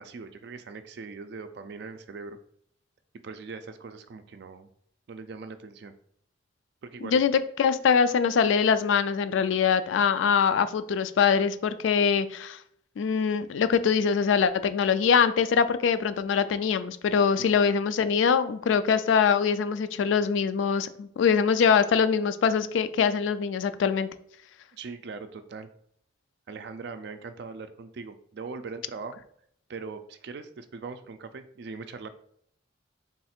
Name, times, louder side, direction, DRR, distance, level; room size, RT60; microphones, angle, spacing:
voice 1, 0.0-2.4 3.2-4.7 5.1-5.9 6.8-7.2 17.4-17.6 24.7-25.7 26.5-29.2 29.7-32.1, right 4 dB, 60° right, 9 dB, 0.4 m, -40 dB
voice 2, 7.6-12.6 13.0-24.1, left 6 dB, 80° left, 12 dB, 0.3 m, -23 dB
3.6 x 2.4 x 4.3 m, 0.67 s
head